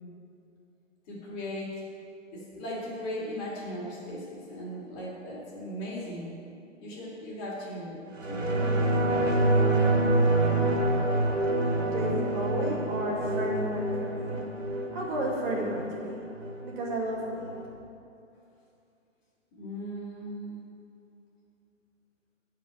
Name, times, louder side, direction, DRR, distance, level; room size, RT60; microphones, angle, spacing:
voice 1, 1.1-1.8 2.3-6.4 6.8-8.0 8.3-8.9 15.5-15.7 19.5-20.6, equal, 25° left, -6 dB, 3.5 m, -38 dB
sound 1, 8.2-17.2 17.5-17.6, right 2 dB, 75° right, 2.6 m, -27 dB
voice 2, 11.9-16.2 16.6-17.6, equal, 40° right, -4 dB, 2.5 m, -33 dB
14.5 x 5.1 x 8.5 m, 2.6 s
hypercardioid pair, 155°, 38 cm